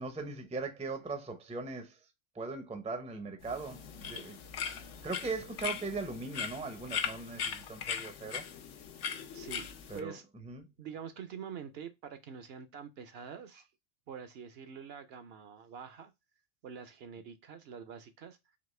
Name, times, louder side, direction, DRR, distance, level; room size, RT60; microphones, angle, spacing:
voice 1, 0.0-2.0 2.3-4.4 5.0-8.4 9.9-10.2 10.4-10.7, right 3 dB, 10° right, 0.4 m, -39 dB
sound 1, 3.4-10.0, left 7 dB, 90° left, 1.0 m, -39 dB
voice 2, 9.3-9.7 9.9-10.2 10.8-13.7 14.1-16.1 16.6-18.4, right 7 dB, 65° right, 0.8 m, -45 dB
4.1 x 2.9 x 3.1 m
omnidirectional pair, 1.2 m